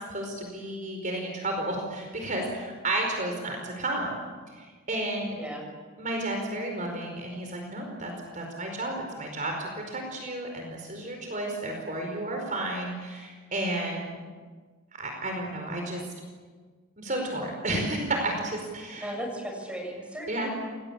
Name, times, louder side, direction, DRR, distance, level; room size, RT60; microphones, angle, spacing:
voice 1, 0.1-4.2 4.6-5.4 6.0-14.2 15.0-16.0 17.0-19.1 20.3-20.5, right 1 dB, 35° right, 2 dB, 4.9 m, -32 dB
voice 2, 5.3-5.7 19.0-20.5, equal, 5° right, 0 dB, 7.2 m, -36 dB
29.0 x 21.5 x 8.6 m, 1.5 s
head